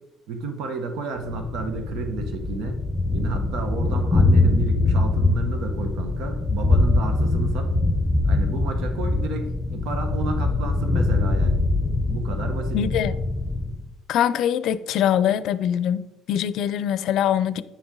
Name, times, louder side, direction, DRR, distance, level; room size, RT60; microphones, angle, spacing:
voice 1, 0.3-2.8 3.1-7.7 8.2-11.6 12.1-12.8, right 4 dB, 70° right, 1.2 m, -31 dB
Thunder, 1.2-13.9, left 2 dB, 10° left, 0.9 m, -23 dB
voice 2, 12.7-13.2 14.1-17.6, left 10 dB, 60° left, 0.5 m, -23 dB
9.6 x 7.1 x 3.8 m
cardioid pair, 150°, 0 cm